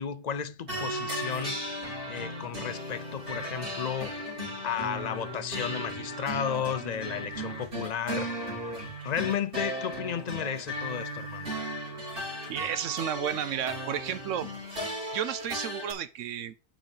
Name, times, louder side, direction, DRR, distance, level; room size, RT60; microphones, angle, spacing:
voice 1, 0.0-1.6 2.1-4.2 4.6-8.3 9.0-11.5, left 8 dB, 55° left, 0.5 m, -33 dB
sound 1, 0.7-15.9, equal, 45° right, 3.1 m, -36 dB
voice 2, 12.5-14.5 15.1-16.5, right 10 dB, 75° right, 0.9 m, -32 dB
7.5 x 5.0 x 5.3 m
omnidirectional pair, 1.3 m